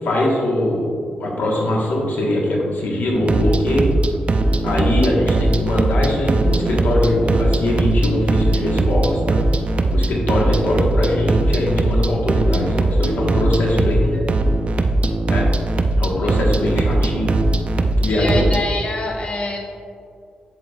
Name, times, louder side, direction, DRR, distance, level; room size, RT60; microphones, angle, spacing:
voice 1, 0.0-3.9 4.6-14.2 15.3-15.5 16.0-17.3 18.0-18.4, left 1 dB, 85° left, -2 dB, 1.4 m, -21 dB
sound 1, 3.1-18.6, right 2 dB, 40° right, 0.5 m, -19 dB
voice 2, 18.1-19.6, left 2 dB, 40° left, -1 dB, 1.1 m, -25 dB
8.0 x 7.6 x 2.4 m, 2.3 s
cardioid pair, 85°, 3 cm